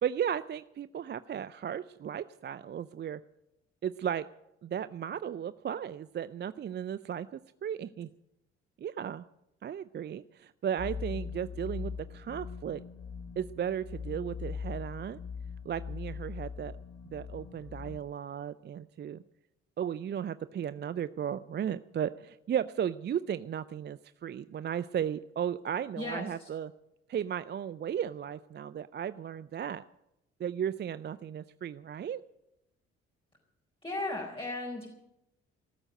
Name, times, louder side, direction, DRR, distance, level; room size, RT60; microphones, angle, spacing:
voice 1, 0.0-3.2 3.8-4.3 4.6-8.1 8.8-9.3 9.6-12.8 13.4-15.2 15.6-16.8 17.1-19.2 19.8-26.7 27.1-29.8 30.4-32.2, right 9 dB, 30° right, 16 dB, 0.5 m, -35 dB
sound 1, 10.8-18.0, left 6 dB, 55° left, 3.6 m, -41 dB
voice 2, 26.0-26.5 33.8-34.9, left 2 dB, 15° left, -2 dB, 4.6 m, -36 dB
15.5 x 13.5 x 6.5 m, 0.86 s
hypercardioid pair, 45°, 33 cm